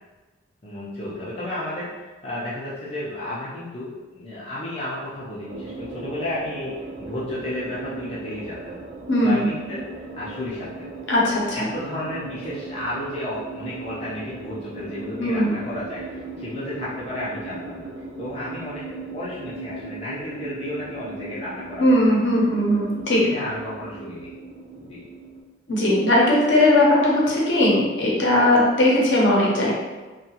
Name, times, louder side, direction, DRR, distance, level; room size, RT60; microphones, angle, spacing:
voice 1, 0.6-8.8 9.2-10.9 11.5-17.9 18.2-22.0 23.2-24.3 24.8-25.1, left 1 dB, 30° left, -8 dB, 0.4 m, -32 dB
sound 1, 5.5-25.4, right 3 dB, 50° right, 0.3 m, -38 dB
voice 2, 9.1-9.5 11.1-11.7 15.2-15.6 21.8-23.2 25.7-29.7, left 1 dB, 65° left, -4 dB, 0.7 m, -19 dB
2.7 x 2.3 x 2.8 m, 1.3 s
head